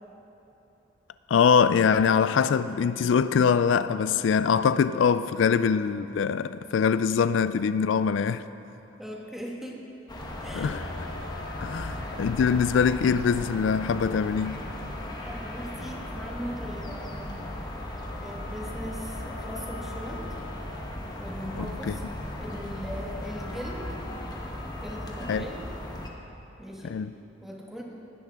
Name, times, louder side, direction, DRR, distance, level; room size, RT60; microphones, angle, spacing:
voice 1, 1.3-8.4 10.5-11.1 11.6-14.6 21.5-21.9 25.3-25.5 26.8-27.1, left 6 dB, 85° left, 0.3 m, -23 dB
voice 2, 9.0-9.8 10.4-10.8 15.2-17.5 18.2-20.2 21.2-22.0 22.4-23.9 24.8-25.6 26.6-27.0 27.4-27.8, equal, ahead, 1.6 m, -39 dB
sound 1, 10.1-26.1, left 1 dB, 20° left, 1.2 m, -36 dB
18.5 x 12.5 x 3.6 m
head